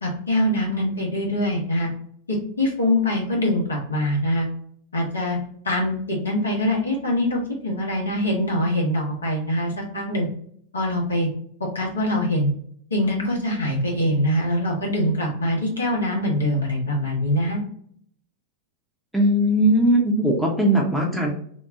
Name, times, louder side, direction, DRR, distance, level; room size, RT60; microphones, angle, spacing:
voice 1, 0.0-1.9 2.3-4.5 4.9-5.4 5.6-10.3 10.7-11.3 11.7-12.5 12.9-17.6, left 1 dB, 75° left, -2 dB, 1.0 m, -23 dB
voice 2, 19.1-21.3, right 1 dB, 5° right, -1 dB, 0.7 m, -19 dB
2.8 x 2.2 x 3.5 m, 0.63 s
figure-of-eight pair, 90°, 0 cm